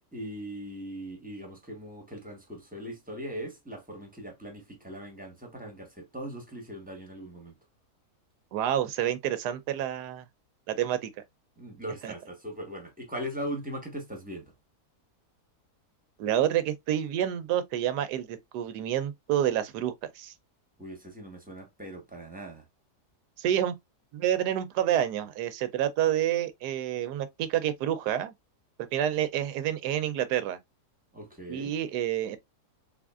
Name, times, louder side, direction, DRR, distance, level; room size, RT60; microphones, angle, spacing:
voice 1, 0.1-7.5 11.6-14.5 20.8-22.6 31.1-31.7, equal, 5° right, 0.9 m, -40 dB
voice 2, 8.5-10.2 10.7-11.1 12.0-12.1 16.2-20.3 23.4-23.7 24.1-28.3 28.9-30.6 31.5-32.4, right 11 dB, 90° right, 1.2 m, -28 dB
3.7 x 3.5 x 2.4 m
omnidirectional pair, 1.7 m